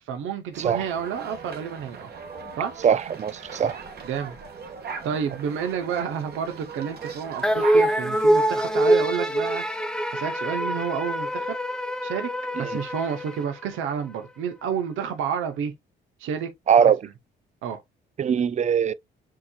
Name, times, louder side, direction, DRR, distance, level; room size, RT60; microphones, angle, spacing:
voice 1, 0.1-2.1 2.6-2.8 4.0-4.3 4.8-9.6 10.1-11.6 12.0-12.3 12.6-15.7 16.2-16.5 17.6-17.8, right 7 dB, 85° right, 1.0 m, -30 dB
sound 1, 0.5-7.9, right 6 dB, 55° right, 1.7 m, -39 dB
voice 2, 2.8-3.8 12.6-12.8 16.7-17.1 18.2-18.9, right 8 dB, 35° right, 0.4 m, -21 dB
sound 2, 7.4-14.0, right 1 dB, 5° left, 0.8 m, -24 dB
7.5 x 2.9 x 2.4 m
cardioid pair, 90°, 20 cm